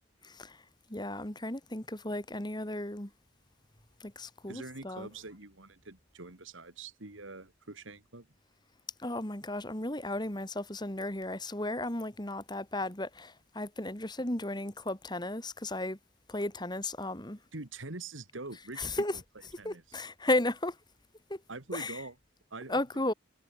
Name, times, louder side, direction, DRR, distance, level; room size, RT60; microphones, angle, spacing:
voice 1, 0.2-0.6 0.9-3.1 4.0-5.1 9.0-16.0 16.3-17.4 18.8-19.2 19.6-20.8 21.3-21.4 21.7-22.0 22.7-23.1, left 1 dB, 20° left, 2.6 m, -34 dB
voice 2, 4.5-8.3 17.5-19.2 19.6-20.0 21.5-22.1 22.5-22.8, right 3 dB, 80° right, 2.6 m, -44 dB
head